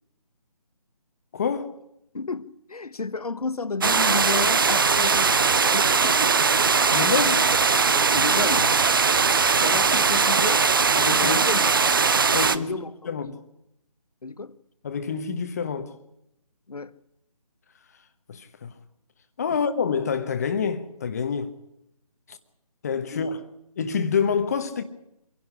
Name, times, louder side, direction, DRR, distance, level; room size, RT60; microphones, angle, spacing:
voice 1, 1.3-1.8 6.9-7.5 10.9-11.4 12.3-13.3 14.8-15.9 18.3-18.7 19.4-21.5 22.3-22.4 22.8-23.4 23.8-24.8, left 6 dB, 25° left, 1.2 m, -27 dB
voice 2, 2.1-6.3 7.9-8.8 9.5-10.7 11.2-11.9 12.5-12.9 13.2-13.4 14.2-14.6 16.7-16.9 19.5-19.6 23.1-23.3, left 3 dB, 65° left, 1.2 m, -32 dB
sound 1, 3.8-12.6, right 5 dB, 35° right, 0.7 m, -20 dB
25.5 x 11.5 x 9.8 m
figure-of-eight pair, 160°, 20 cm